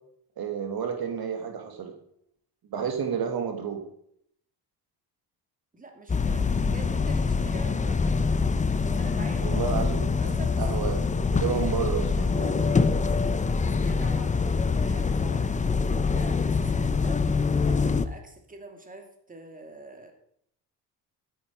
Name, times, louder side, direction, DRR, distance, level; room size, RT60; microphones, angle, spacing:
voice 1, 0.4-1.9 2.7-3.9 9.3-10.1 10.6-11.0 11.3-13.1, right 7 dB, 60° right, 5 dB, 1.9 m, -31 dB
voice 2, 5.7-8.2 8.9-9.6 10.2-10.6 12.1-14.3 14.7-17.2 17.6-20.1, right 2 dB, 20° right, 4 dB, 2.7 m, -45 dB
sound 1, 6.1-18.1, left 4 dB, 20° left, 0.6 m, -25 dB
13.0 x 9.9 x 4.6 m, 0.68 s
cardioid pair, 100°, 41 cm